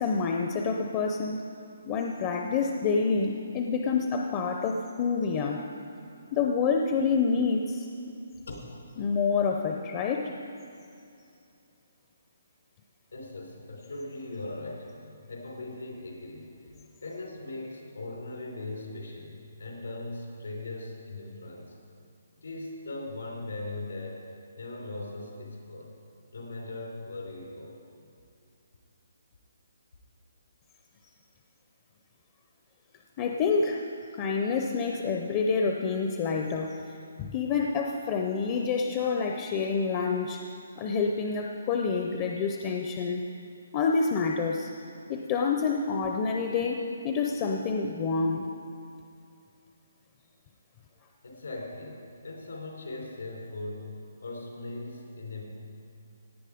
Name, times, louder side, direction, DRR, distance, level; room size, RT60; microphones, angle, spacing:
voice 1, 0.0-1.4 1.9-5.6 6.3-7.9 9.0-10.3 33.2-33.8 34.1-40.4 40.8-43.2 43.7-44.7 45.1-48.4, left 5 dB, 20° left, 2 dB, 0.5 m, -28 dB
voice 2, 13.1-14.9 15.3-16.6 17.0-21.8 22.4-24.2 24.6-25.9 26.3-27.8 51.2-55.4, left 2 dB, 85° left, -1 dB, 3.9 m, -39 dB
17.0 x 9.0 x 5.0 m, 2.6 s
hypercardioid pair, 175°, 0 cm